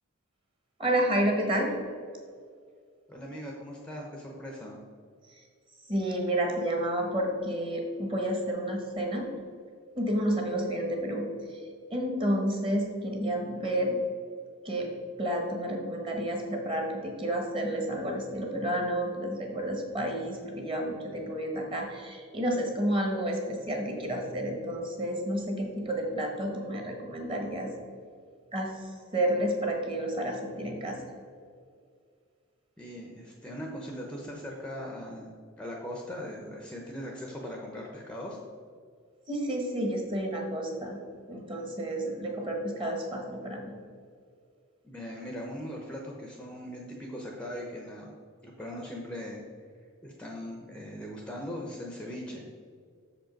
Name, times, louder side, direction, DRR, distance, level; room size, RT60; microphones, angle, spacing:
voice 1, 0.8-1.7 5.9-9.3 10.0-11.6 11.9-14.0 14.6-14.9 15.2-27.7 28.5-31.0 39.3-41.0 41.3-43.7, right 1 dB, 25° right, 1 dB, 1.1 m, -30 dB
voice 2, 3.1-4.8 32.8-35.3 35.6-38.4 44.8-48.1 48.4-49.4 50.0-52.5, equal, 5° left, -1 dB, 0.6 m, -40 dB
6.5 x 5.2 x 5.1 m, 2.1 s
head